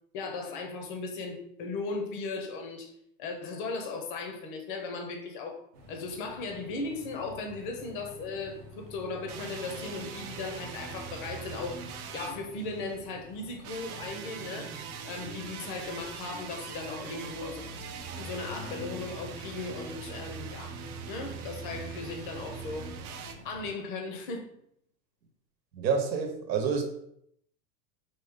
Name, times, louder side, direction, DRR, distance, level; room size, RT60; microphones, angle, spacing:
voice 1, 0.1-2.9 3.2-5.6 5.9-11.8 12.1-14.7 15.0-17.7 18.2-20.8 21.1-22.9 23.4-24.5, left 3 dB, 30° left, 4 dB, 0.6 m, -37 dB
sound 1, 5.7-23.7, left 1 dB, 25° right, 0.4 m, -48 dB
sound 2, 9.3-13.0 13.6-23.3, right 7 dB, 60° right, 0.7 m, -42 dB
voice 2, 25.7-26.8, right 6 dB, 80° right, 4 dB, 1.1 m, -28 dB
4.7 x 2.8 x 3.5 m, 0.72 s
supercardioid pair, 160°, 50 cm